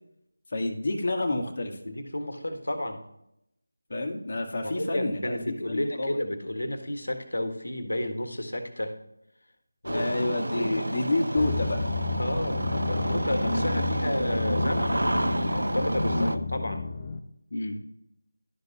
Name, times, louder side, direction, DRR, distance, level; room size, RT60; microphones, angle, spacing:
voice 1, 0.5-1.8 3.9-5.4 5.7-6.2 9.9-11.8 13.5-13.7 16.1-16.4 17.5-17.8, left 2 dB, 50° left, 2 dB, 1.5 m, -29 dB
voice 2, 1.8-3.0 4.6-8.9 9.8-10.1 10.5-10.9 12.2-16.9, left 1 dB, 75° left, 6 dB, 1.6 m, -31 dB
Engine starting, 9.8-16.4, right 1 dB, 85° right, 0.6 m, -29 dB
sound 1, 11.4-17.2, left 4 dB, 30° left, 0.6 m, -32 dB
12.0 x 5.2 x 2.8 m, 0.79 s
figure-of-eight pair, 165°, 0 cm